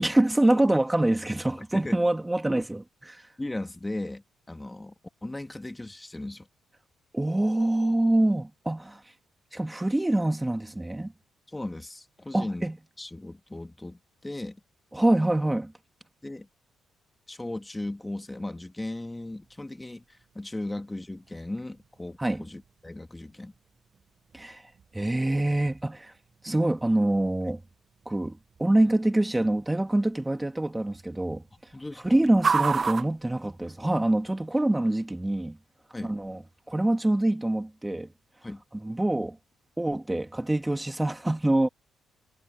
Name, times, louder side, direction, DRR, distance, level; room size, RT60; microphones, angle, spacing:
voice 1, 0.0-3.2 7.1-9.0 9.5-11.1 12.3-12.8 14.9-15.7 22.2-22.4 24.3-24.6 24.9-26.1 26.4-27.6 28.1-31.4 32.0-35.6 36.0-36.4 36.7-38.1 38.8-39.4 39.8-41.7, right 1 dB, 10° right, 2.5 m, -25 dB
voice 2, 1.6-2.0 3.4-4.9 5.2-6.5 11.5-12.6 13.0-14.6 16.2-16.5 17.3-23.5 31.7-32.2 35.9-36.2 38.4-38.6, left 1 dB, 15° left, 2.0 m, -37 dB
sound 1, 19.4-34.2, right 5 dB, 40° right, 1.0 m, -37 dB
cardioid pair, 90°, 0 cm